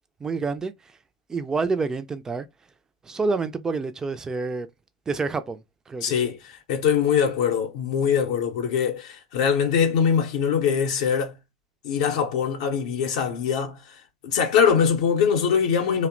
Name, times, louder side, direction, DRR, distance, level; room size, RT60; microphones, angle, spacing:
voice 1, 0.2-0.7 1.3-2.5 3.0-4.7 5.1-6.2, right 4 dB, 15° right, 0.3 m, -28 dB
voice 2, 6.0-11.4 11.8-16.1, left 7 dB, 60° left, 0.6 m, -23 dB
2.7 x 2.0 x 2.5 m
hypercardioid pair, 90°, 4 cm